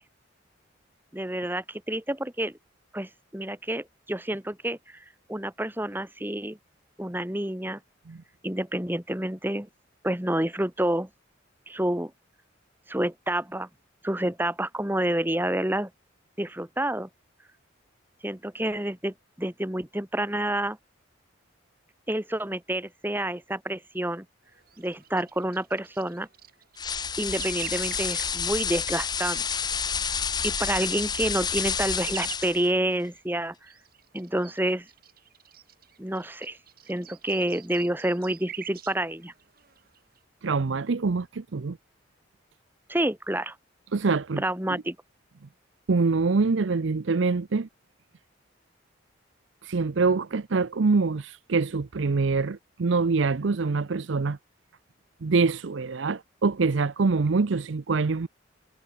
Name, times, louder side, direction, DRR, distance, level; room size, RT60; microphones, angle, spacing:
voice 1, 1.1-2.6 2.9-5.0 5.3-6.6 7.0-7.8 8.4-9.7 10.0-11.1 11.7-12.1 12.9-13.7 14.0-15.9 16.4-17.1 18.2-20.8 22.1-24.3 24.8-26.3 27.2-29.6 30.4-33.7 34.1-34.9 36.0-36.6 36.9-39.3 42.9-43.6 44.4-45.0, right 1 dB, 10° right, 1.7 m, -28 dB
sound 1, 24.4-40.2, right 10 dB, 50° right, 4.9 m, -47 dB
sound 2, 26.8-32.7, left 6 dB, 20° left, 0.8 m, -29 dB
voice 2, 40.4-41.8 43.9-44.4 44.7-44.8 45.9-47.7 49.6-54.4 55.2-58.3, right 4 dB, 70° right, 0.6 m, -25 dB
head